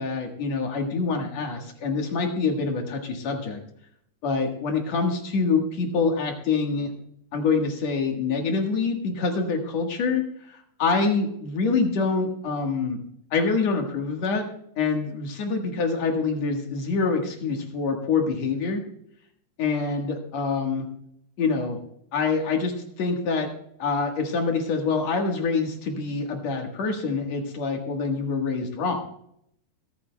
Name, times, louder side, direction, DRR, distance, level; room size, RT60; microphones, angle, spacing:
voice 1, 0.0-3.6 4.2-6.9 7.3-13.0 13.3-14.5 14.8-18.8 19.6-20.9 21.4-21.8 22.1-23.5 23.8-29.0, left 4 dB, 55° left, 3 dB, 2.4 m, -26 dB
21.5 x 10.0 x 2.3 m, 0.71 s
omnidirectional pair, 4.2 m